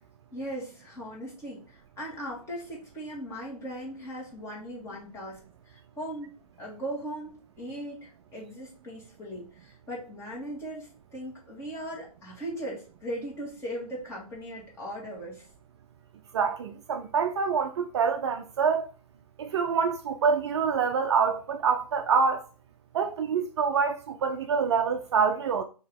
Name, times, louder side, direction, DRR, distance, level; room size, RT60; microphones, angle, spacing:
voice 1, 0.3-5.4 5.7-6.3 6.6-15.5, equal, 15° left, 1.8 m, -38 dB
voice 2, 16.3-18.9 19.4-22.4 22.9-25.6, right 6 dB, 45° right, 0.4 m, -26 dB
4.4 x 2.9 x 3.7 m
hypercardioid pair, 130°, 20 cm